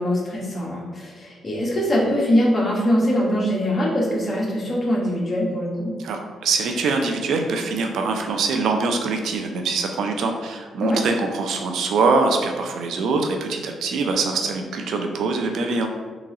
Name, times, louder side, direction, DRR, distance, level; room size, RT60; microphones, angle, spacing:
voice 1, 0.0-5.9 10.8-11.0, equal, 35° left, -4 dB, 1.1 m, -22 dB
voice 2, 6.0-15.9, right 4 dB, 75° right, 4 dB, 0.4 m, -23 dB
3.8 x 2.8 x 2.8 m, 1.4 s
cardioid pair, 85°, 0 cm